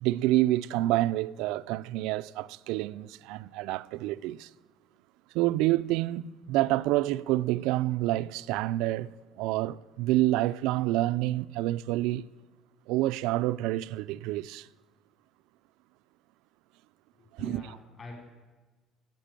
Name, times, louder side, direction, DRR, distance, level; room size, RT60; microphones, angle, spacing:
voice 1, 0.0-4.5 5.3-12.3 12.9-14.7 17.4-17.8, right 16 dB, 80° right, 0.4 m, -28 dB
voice 2, 17.2-18.2, left 3 dB, 30° left, 3.5 m, -45 dB
15.0 x 9.1 x 8.9 m
cardioid pair, 165°, 0 cm